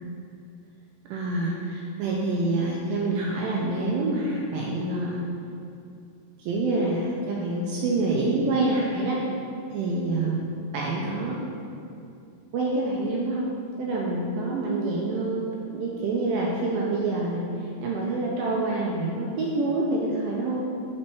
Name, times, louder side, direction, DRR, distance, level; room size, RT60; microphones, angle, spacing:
voice 1, 1.1-5.2 6.4-9.2 9.7-11.5 12.5-13.5 13.8-15.4 15.7-17.4 17.8-20.7, right 2 dB, 85° right, -3 dB, 2.1 m, -26 dB
6.2 x 4.3 x 4.6 m, 2.5 s
omnidirectional pair, 4.7 m